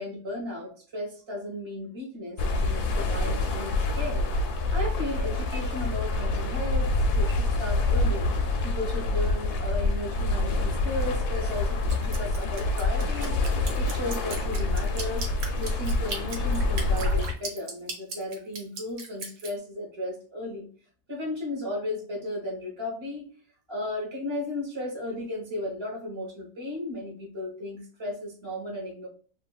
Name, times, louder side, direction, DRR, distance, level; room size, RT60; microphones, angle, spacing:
voice 1, 0.0-4.2 4.7-8.3 8.6-15.2 15.6-20.7 21.1-23.3 23.7-29.1, left 1 dB, 20° right, -2 dB, 0.8 m, -35 dB
sound 1, 2.4-17.3, left 2 dB, 75° left, 1.0 m, -26 dB
Drip, 11.9-19.5, right 4 dB, 80° right, 1.3 m, -37 dB
3.2 x 2.4 x 2.3 m, 0.42 s
omnidirectional pair, 1.8 m